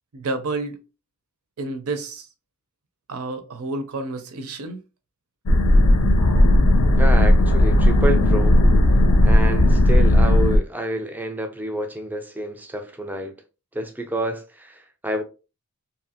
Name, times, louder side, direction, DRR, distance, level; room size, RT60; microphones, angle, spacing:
voice 1, 0.1-0.8 1.6-2.3 3.1-4.8, right 3 dB, 75° right, 0.6 m, -30 dB
sound 1, 5.5-10.6, left 1 dB, 75° left, 0.5 m, -15 dB
voice 2, 7.0-8.6 9.2-13.3 13.7-15.2, right 1 dB, 10° right, 0.4 m, -28 dB
2.8 x 2.4 x 2.7 m
head